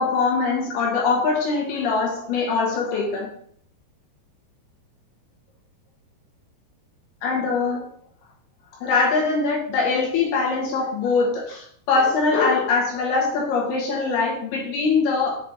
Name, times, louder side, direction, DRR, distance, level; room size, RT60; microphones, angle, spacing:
voice 1, 0.0-3.3 7.2-7.8 8.8-15.4, left 4 dB, 75° left, -3 dB, 3.3 m, -22 dB
7.5 x 4.2 x 3.3 m, 0.62 s
omnidirectional pair, 4.7 m